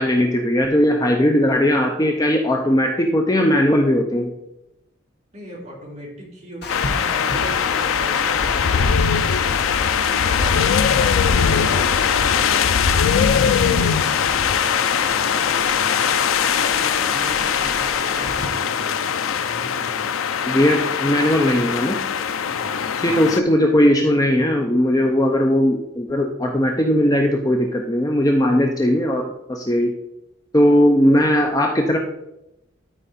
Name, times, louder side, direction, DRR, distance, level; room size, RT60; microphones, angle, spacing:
voice 1, 0.0-4.3 20.5-22.0 23.0-29.9 30.5-32.0, equal, 20° left, 2 dB, 0.6 m, -18 dB
voice 2, 5.3-9.5 10.0-12.8 13.2-16.1 16.5-19.1 19.4-20.0 22.5-23.5, right 1 dB, 30° right, -5 dB, 3.2 m, -38 dB
Water, 6.6-18.5, left 3 dB, 50° left, 1.0 m, -32 dB
sound 1, 6.7-23.4, left 7 dB, 85° left, 0.5 m, -21 dB
12.5 x 4.7 x 4.2 m, 0.87 s
head